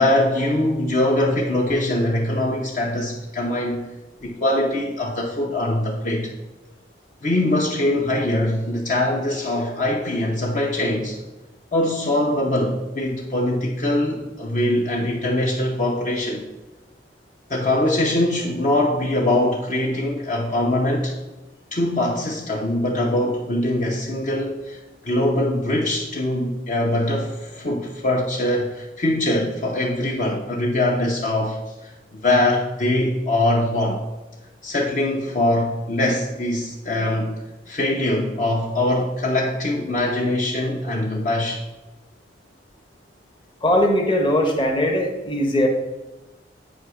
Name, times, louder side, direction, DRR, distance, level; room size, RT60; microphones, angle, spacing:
voice 1, 0.0-3.8 4.2-6.3 7.2-11.2 11.7-16.4 17.5-21.1 21.7-31.6 32.1-34.0 34.6-37.3 37.7-41.6, left 1 dB, 45° left, -2 dB, 0.7 m, -22 dB
voice 2, 43.6-45.7, left 1 dB, 25° left, 2 dB, 1.0 m, -20 dB
8.1 x 2.8 x 6.1 m, 1.0 s
head